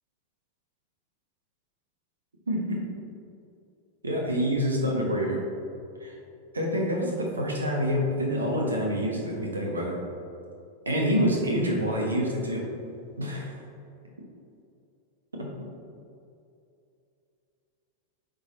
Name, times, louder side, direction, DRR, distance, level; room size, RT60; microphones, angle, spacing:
voice 1, 2.5-2.8 4.0-5.4 6.0-6.1 6.5-9.9 10.8-12.6 13.2-13.5 15.4-15.5, equal, 75° right, -1 dB, 1.3 m, -27 dB
8.6 x 4.0 x 4.0 m, 2.6 s
figure-of-eight pair, 90°, 0 cm